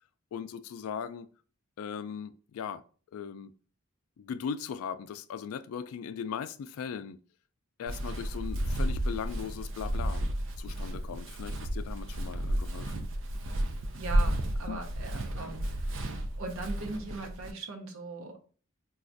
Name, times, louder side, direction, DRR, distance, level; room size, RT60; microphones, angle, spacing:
voice 1, 0.3-1.3 1.8-2.8 3.1-3.5 4.2-7.2 7.8-10.2 10.6-13.1 14.7-14.8, left 7 dB, 85° left, 0.3 m, -38 dB
Walk footsteps, 7.9-17.5, right 1 dB, 60° right, 0.4 m, -32 dB
voice 2, 13.9-15.9 16.4-18.4, right 3 dB, 85° right, 0.7 m, -39 dB
4.1 x 2.3 x 2.5 m
head